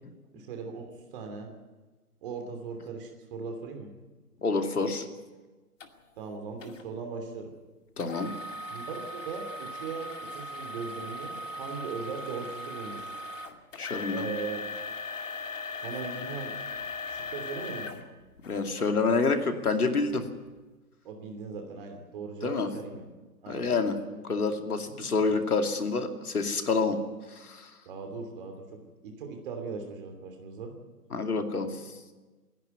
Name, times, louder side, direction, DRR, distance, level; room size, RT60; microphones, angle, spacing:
voice 1, 0.3-1.5 2.2-3.9 6.2-7.5 8.7-13.1 14.1-14.7 15.8-16.6 17.1-18.0 21.0-23.1 23.4-23.7 27.8-30.7, right 4 dB, 35° right, 4 dB, 3.0 m, -39 dB
voice 2, 4.4-5.1 8.0-8.3 13.7-14.3 18.5-20.2 22.4-22.7 23.5-27.0 27.3-27.7 31.1-31.9, left 4 dB, 65° left, 5 dB, 2.7 m, -28 dB
sound 1, 5.8-5.9 6.6-6.8 8.0-18.8 19.4-19.5 20.1-20.2, left 2 dB, 50° left, 2.4 m, -39 dB
29.0 x 11.0 x 9.3 m, 1.2 s
figure-of-eight pair, 135°, 47 cm